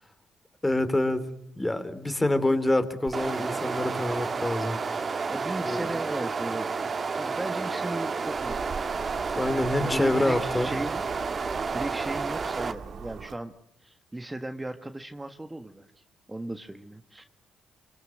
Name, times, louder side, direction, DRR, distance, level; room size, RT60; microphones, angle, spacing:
voice 1, 0.6-1.3 1.6-4.8 5.6-5.9 9.3-10.7, left 1 dB, 15° left, 10 dB, 3.4 m, -26 dB
sound 1, 3.1-12.7, right 4 dB, 45° right, 2.2 m, -31 dB
voice 2, 5.0-6.7 7.2-8.9 9.8-11.0 11.7-13.5 13.8-16.0 16.3-17.2, right 1 dB, 15° right, 7 dB, 1.4 m, -36 dB
sound 2, 8.3-13.4, right 6 dB, 65° right, 1.7 m, -41 dB
24.5 x 22.0 x 7.9 m, 0.73 s
supercardioid pair, 60°, 0 cm